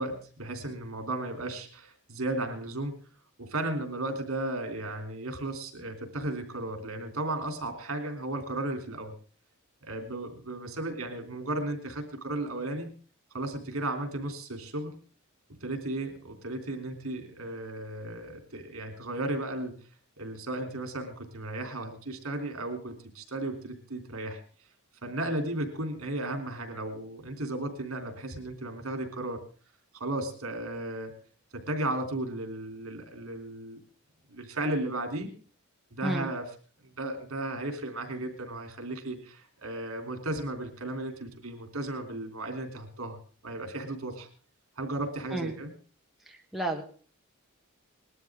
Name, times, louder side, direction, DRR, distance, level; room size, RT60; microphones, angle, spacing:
voice 1, 0.0-2.9 3.4-9.1 9.8-12.9 13.3-14.9 15.6-19.7 20.2-24.4 25.0-29.4 29.9-31.1 31.5-33.8 34.3-35.3 35.9-36.5 36.8-43.2 43.4-44.3 44.8-45.7, right 2 dB, 70° right, 5 dB, 3.4 m, -35 dB
voice 2, 46.3-46.8, right 2 dB, ahead, 1 dB, 1.3 m, -32 dB
20.0 x 12.5 x 3.7 m, 0.40 s
head